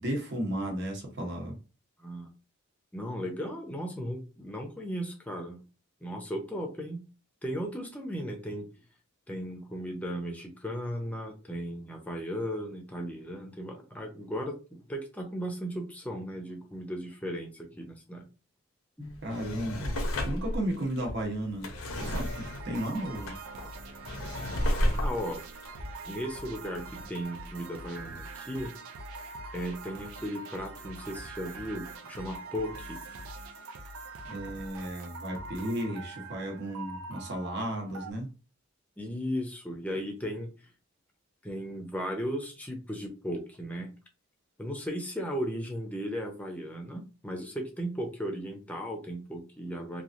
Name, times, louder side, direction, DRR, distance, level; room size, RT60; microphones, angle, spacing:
voice 1, 0.0-1.6 19.2-19.9 20.2-21.7 21.9-23.3 34.2-38.3, right 1 dB, 55° right, 0.9 m, -34 dB
voice 2, 2.9-5.6 6.0-7.0 7.4-8.6 9.3-18.2 19.0-19.2 25.0-25.4 26.1-28.7 29.5-33.0 39.0-40.5 41.4-43.9 44.6-50.0, equal, 5° left, 0.6 m, -36 dB
Drawer open or close, 19.1-26.8 27.2-27.3, equal, 75° left, 0.7 m, -33 dB
sound 1, 22.0-38.1, right 3 dB, 80° right, 0.5 m, -43 dB
3.0 x 2.4 x 2.5 m
head